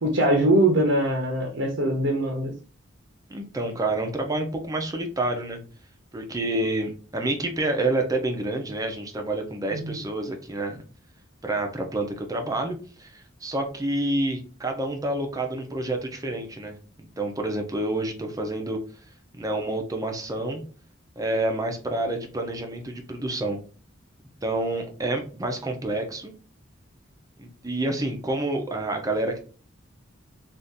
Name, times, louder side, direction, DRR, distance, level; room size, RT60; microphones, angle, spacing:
voice 1, 0.0-2.5 9.7-10.0, right 1 dB, 75° right, 0 dB, 0.7 m, -22 dB
voice 2, 3.3-5.6 6.1-10.8 11.4-18.8 19.4-20.6 21.2-23.6 24.4-26.3 27.4-29.4, right 2 dB, 20° right, 3 dB, 0.6 m, -28 dB
2.7 x 2.5 x 3.5 m, 0.38 s
head